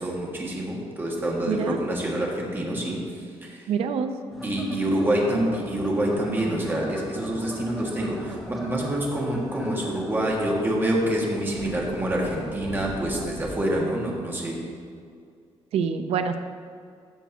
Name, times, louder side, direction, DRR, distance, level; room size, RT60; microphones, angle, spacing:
voice 1, 0.0-3.7 4.4-14.6, right 1 dB, 20° right, -2 dB, 1.8 m, -27 dB
voice 2, 1.5-1.8 3.7-4.1 15.7-16.4, right 7 dB, 70° right, 8 dB, 0.5 m, -25 dB
sound 1, 4.3-13.6, equal, ahead, 1.1 m, -40 dB
13.0 x 7.2 x 2.9 m, 2.2 s
cardioid pair, 130°, 11 cm